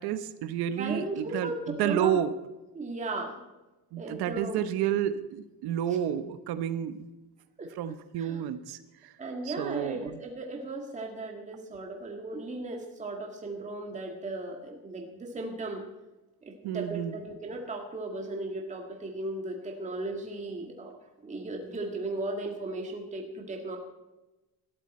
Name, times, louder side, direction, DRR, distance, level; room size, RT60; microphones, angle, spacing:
voice 1, 0.0-2.3 3.9-7.1 7.8-8.8 9.0-9.1 9.4-10.2 16.6-17.2, right 10 dB, 85° right, 11 dB, 1.1 m, -30 dB
voice 2, 0.8-2.2 2.7-3.4 4.0-4.6 7.6-7.7 8.2-8.4 9.2-15.8 16.4-21.0 21.2-23.8, right 2 dB, 20° right, 1 dB, 2.0 m, -36 dB
20.0 x 13.5 x 4.3 m, 1.1 s
cardioid pair, 170°, 37 cm